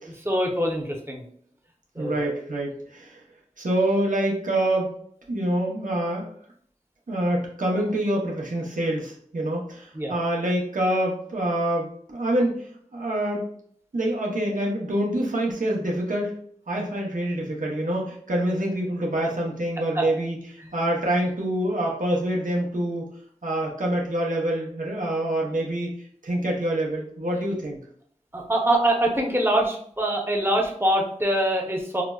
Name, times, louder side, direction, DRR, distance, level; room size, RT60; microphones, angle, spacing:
voice 1, 0.1-1.2 2.0-2.3 9.9-10.1 19.9-20.1 20.6-20.7 28.3-32.0, right 1 dB, 15° right, 0 dB, 0.8 m, -24 dB
voice 2, 2.0-3.2 3.6-4.9 5.3-6.3 7.1-13.5 13.9-16.4 16.7-23.1 23.4-25.9 26.2-27.8, right 1 dB, 80° right, -2 dB, 0.8 m, -26 dB
4.8 x 2.1 x 2.3 m, 0.63 s
wide cardioid pair, 40°, 13 cm